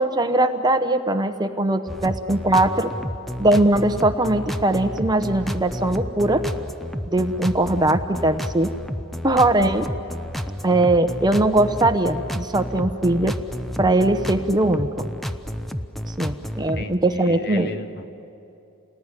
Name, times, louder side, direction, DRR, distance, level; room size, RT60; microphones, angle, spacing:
voice 1, 0.0-2.9 3.4-6.4 7.1-8.7 9.2-9.9 10.6-13.3 13.8-15.0 16.2-17.7, right 2 dB, 20° right, 8 dB, 0.9 m, -20 dB
sound 1, 1.9-16.9, equal, ahead, 0.7 m, -31 dB
voice 2, 16.7-18.0, left 2 dB, 50° left, 8 dB, 1.2 m, -34 dB
29.0 x 20.0 x 9.9 m, 2.8 s
head